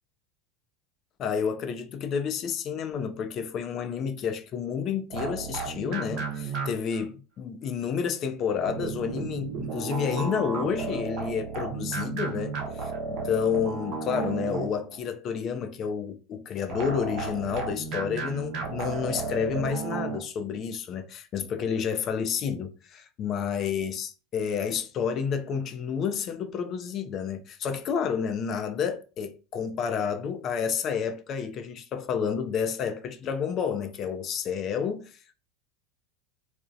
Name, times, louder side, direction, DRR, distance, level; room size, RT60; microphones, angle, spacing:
voice 1, 1.2-35.3, left 7 dB, 40° left, 0.3 m, -30 dB
sound 1, 5.1-7.0 8.7-15.0 16.7-20.2, right 4 dB, 50° right, 0.7 m, -33 dB
2.4 x 2.1 x 2.5 m
supercardioid pair, 125°, 0 cm